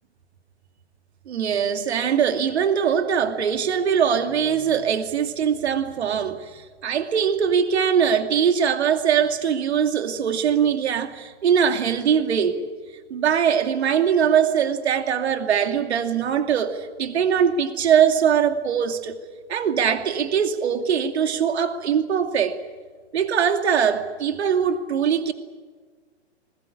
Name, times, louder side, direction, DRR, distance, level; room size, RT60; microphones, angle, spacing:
voice 1, 1.3-12.6 13.1-19.2 19.5-22.6 23.1-25.3, right 7 dB, 70° right, 7 dB, 2.6 m, -22 dB
21.5 x 21.0 x 8.6 m, 1.5 s
hypercardioid pair, 155°, 34 cm